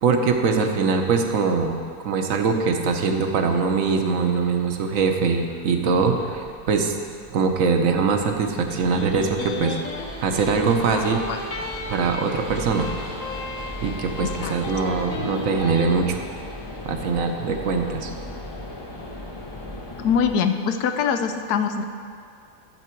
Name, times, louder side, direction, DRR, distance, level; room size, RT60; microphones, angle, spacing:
voice 1, 0.0-7.0 7.3-9.8 10.2-11.2 11.9-12.9 13.8-16.2 16.8-18.1, right 5 dB, 60° right, 4 dB, 1.2 m, -22 dB
sound 1, 1.7-20.4, left 1 dB, 30° left, 0.5 m, -38 dB
Electric guitar, 8.7-15.9, left 2 dB, 55° left, 1.7 m, -34 dB
voice 2, 10.9-11.4 14.2-14.6 20.0-21.8, left 6 dB, 85° left, 7 dB, 1.2 m, -24 dB
12.0 x 7.8 x 4.5 m, 2.4 s
omnidirectional pair, 1.6 m